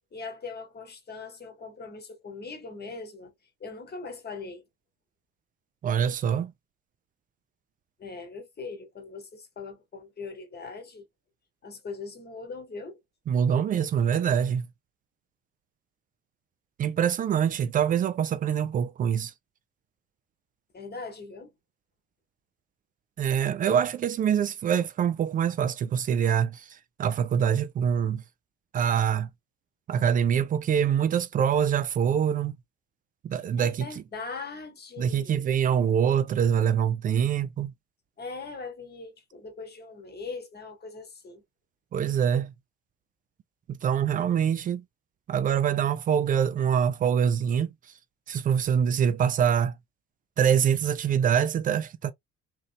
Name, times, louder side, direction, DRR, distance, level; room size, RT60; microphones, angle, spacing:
voice 1, 0.1-3.3 3.6-4.6 8.0-11.0 11.6-13.0 20.7-21.5 33.6-35.4 38.2-41.4, left 4 dB, 25° left, 1.1 m, -40 dB
voice 2, 5.8-6.5 13.3-14.7 16.8-19.3 23.2-28.2 28.7-29.3 29.9-32.6 33.2-33.9 35.0-37.7 41.9-42.5 43.7-44.8 45.3-47.7 48.3-49.7 50.4-52.1, right 8 dB, 25° right, 0.3 m, -25 dB
2.9 x 2.7 x 2.6 m
figure-of-eight pair, 55°, 40 cm